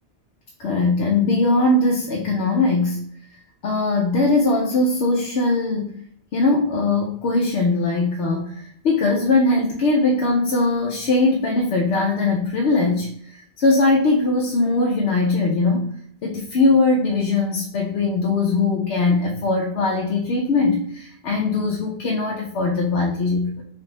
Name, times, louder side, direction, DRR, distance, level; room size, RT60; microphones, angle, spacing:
voice 1, 0.6-3.1 3.6-6.0 6.3-15.9 16.2-23.6, left 3 dB, 75° left, 0 dB, 0.9 m, -20 dB
3.3 x 2.5 x 3.9 m, 0.66 s
omnidirectional pair, 1.1 m